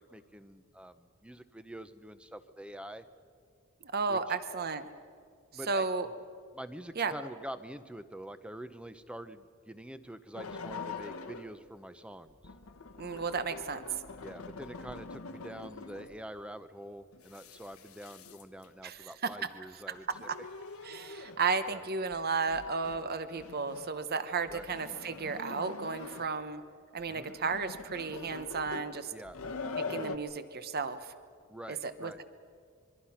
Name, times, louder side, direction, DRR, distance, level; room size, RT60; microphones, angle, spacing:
voice 1, 0.0-3.0 4.1-4.4 5.5-5.9 6.5-12.4 14.2-20.3 21.7-21.8 24.5-24.7 27.1-27.3 29.1-29.4 31.5-32.2, right 1 dB, 5° right, 11 dB, 0.7 m, -46 dB
voice 2, 3.8-4.8 5.7-6.1 7.0-7.1 13.0-13.8 18.8-19.3 19.9-20.0 20.3-20.4 20.8-26.6 26.9-29.1 29.8-31.1 31.7-32.2, right 4 dB, 45° right, 11 dB, 1.0 m, -33 dB
sound 1, 10.3-11.6 12.3-16.3 17.1-18.7 19.9-21.5 22.1-22.2 22.5-23.0 23.3-24.0 24.5-26.5 27.0-30.2, left 4 dB, 75° left, 1.2 m, -44 dB
26.5 x 23.5 x 5.8 m, 2.2 s
head